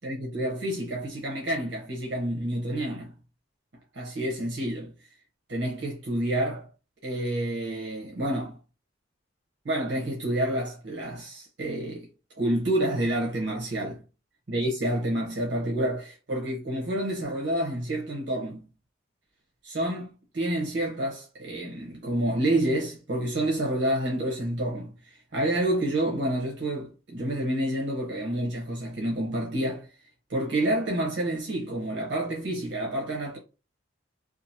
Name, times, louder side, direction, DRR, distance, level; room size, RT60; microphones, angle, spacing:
voice 1, 0.0-3.1 3.9-4.9 5.5-6.7 7.0-8.6 9.6-12.1 12.4-14.0 14.5-18.7 19.6-24.9 25.3-29.9 30.3-33.4, right 1 dB, 60° right, 0.8 m, -28 dB
2.8 x 2.4 x 2.7 m
head